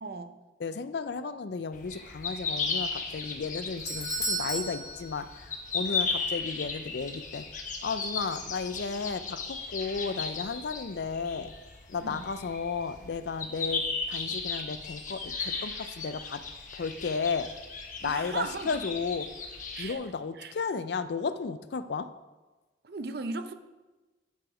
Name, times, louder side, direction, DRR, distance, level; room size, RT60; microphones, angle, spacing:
voice 1, 0.0-0.4 12.0-12.2 18.0-18.8 19.7-20.0 20.4-20.5 22.8-23.5, right 3 dB, 55° right, 10 dB, 0.6 m, -37 dB
voice 2, 0.6-5.5 5.7-7.5 7.8-11.5 11.9-16.4 16.7-17.5 18.0-19.3 19.8-22.1, left 5 dB, 65° left, 12 dB, 0.4 m, -33 dB
sound 1, 1.7-19.9, left 4 dB, 45° left, 1.1 m, -36 dB
Doorbell, 3.4-5.9 6.2-6.3 7.0-7.1, right 1 dB, 15° left, 1.1 m, -35 dB
11.0 x 4.9 x 4.9 m, 1.2 s
head